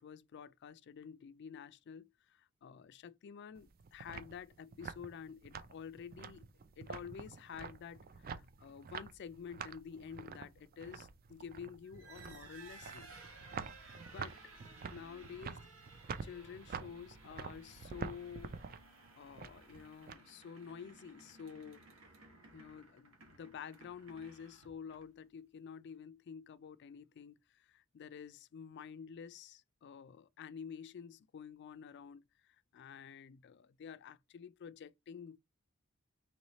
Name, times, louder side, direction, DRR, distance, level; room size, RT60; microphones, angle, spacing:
voice 1, 0.0-6.5 6.8-13.1 14.1-14.4 14.9-15.6 16.2-18.6 19.2-21.9 22.5-35.4, left 7 dB, 55° left, 0.3 m, -50 dB
sound 1, 3.5-20.1, right 5 dB, 45° right, 0.4 m, -48 dB
sound 2, 11.8-25.3, right 3 dB, 80° right, 1.3 m, -58 dB
3.2 x 3.1 x 4.0 m
head